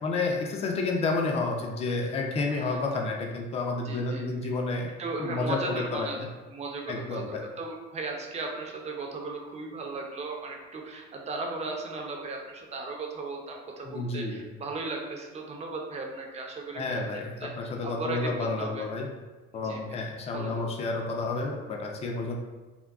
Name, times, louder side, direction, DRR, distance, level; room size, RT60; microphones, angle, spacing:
voice 1, 0.0-4.9 5.2-6.3 6.9-7.4 13.8-14.4 16.7-19.1 19.5-22.4, left 3 dB, 30° left, 1 dB, 0.4 m, -30 dB
voice 2, 2.5-2.8 3.8-4.2 5.0-6.2 6.5-17.0 17.4-17.5 17.8-18.9 19.6-20.0 20.3-20.6, right 3 dB, 30° right, 1 dB, 0.5 m, -36 dB
3.6 x 2.2 x 2.3 m, 1.2 s
cardioid pair, 115°, 21 cm